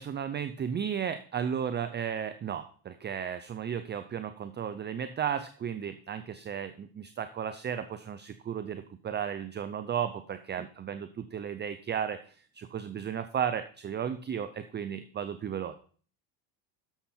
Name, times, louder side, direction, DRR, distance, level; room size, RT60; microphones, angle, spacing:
voice 1, 0.0-15.7, right 8 dB, 25° right, 10 dB, 0.6 m, -34 dB
11.5 x 7.2 x 4.4 m, 0.43 s
cardioid pair, 120°, 45 cm